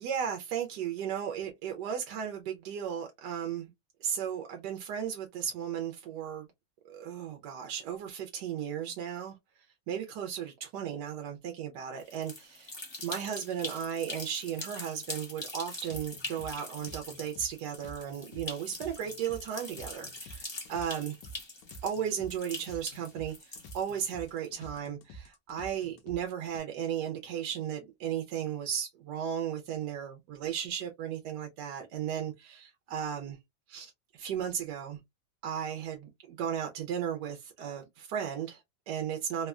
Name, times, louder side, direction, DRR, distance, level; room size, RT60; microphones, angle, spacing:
voice 1, 0.0-3.7 4.0-6.5 6.9-12.7 13.0-21.1 21.8-33.4 33.7-35.0 35.4-39.5, right 8 dB, 75° right, 1.1 m, -35 dB
sound 1, 12.0-24.5, left 2 dB, 30° left, 0.5 m, -43 dB
sound 2, 15.9-26.6, right 2 dB, 80° left, 1.2 m, -49 dB
3.4 x 2.1 x 2.3 m
omnidirectional pair, 1.9 m